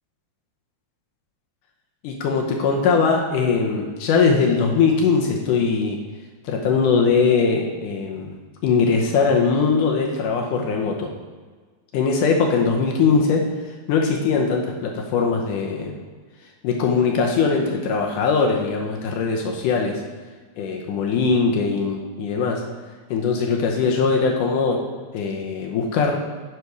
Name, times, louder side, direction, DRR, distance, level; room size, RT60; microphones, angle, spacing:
voice 1, 2.0-6.0 6.4-8.3 8.6-11.1 11.9-13.4 13.9-16.0 16.6-20.0 20.6-22.6 23.1-24.8 25.1-26.2, left 5 dB, 75° left, 0 dB, 2.0 m, -21 dB
9.7 x 5.2 x 4.7 m, 1.4 s
omnidirectional pair, 4.6 m